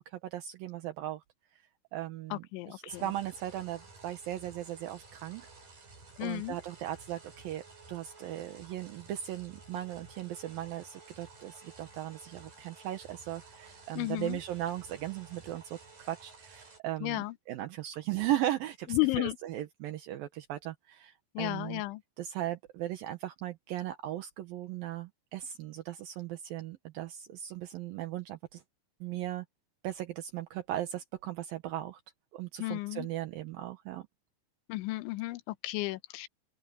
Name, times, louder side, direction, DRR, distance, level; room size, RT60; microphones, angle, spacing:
voice 1, 0.1-1.2 1.9-5.5 6.2-7.6 7.9-15.8 16.1-21.8 22.2-28.6 29.0-29.5 29.8-32.0 32.3-34.1, right 13 dB, 75° right, 2.2 m, -37 dB
voice 2, 2.3-3.0 6.2-6.6 14.0-14.4 17.0-17.3 18.9-19.4 21.4-22.0 32.6-33.1 34.7-36.3, left 20 dB, 80° left, 3.2 m, -33 dB
sound 1, 2.9-16.8, right 3 dB, 45° right, 9.7 m, -54 dB
open air
omnidirectional pair, 5.4 m